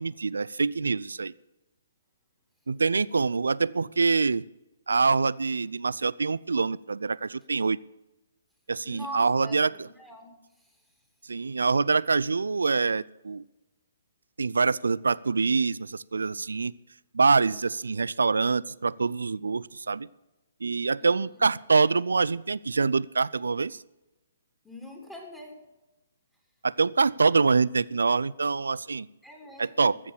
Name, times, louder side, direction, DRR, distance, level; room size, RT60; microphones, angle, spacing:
voice 1, 0.0-1.3 2.7-4.4 4.9-7.8 8.7-9.9 11.3-13.4 14.4-16.7 17.1-20.1 20.6-23.8 26.6-29.1 29.6-30.0, right 4 dB, 80° right, 20 dB, 0.4 m, -25 dB
voice 2, 8.8-10.8 21.0-21.5 24.6-25.6 29.2-30.0, left 1 dB, 5° left, 0 dB, 2.8 m, -43 dB
14.5 x 7.2 x 8.8 m, 1.0 s
hypercardioid pair, 140°, 0 cm